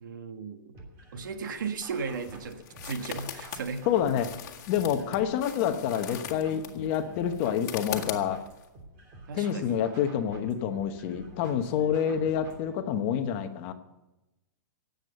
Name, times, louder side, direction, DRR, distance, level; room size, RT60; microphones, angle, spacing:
voice 1, 0.0-0.8 1.1-3.9 4.9-5.2 9.3-9.8, right 5 dB, 85° right, 8 dB, 1.6 m, -36 dB
sound 1, 0.7-12.7, right 2 dB, 30° right, 3.1 m, -50 dB
sound 2, 1.5-8.7, left 10 dB, 55° left, 1.9 m, -41 dB
voice 2, 3.9-4.3 4.7-8.4 9.3-13.7, left 9 dB, 35° left, 8 dB, 1.0 m, -28 dB
18.5 x 8.2 x 6.6 m, 0.99 s
supercardioid pair, 165°, 10 cm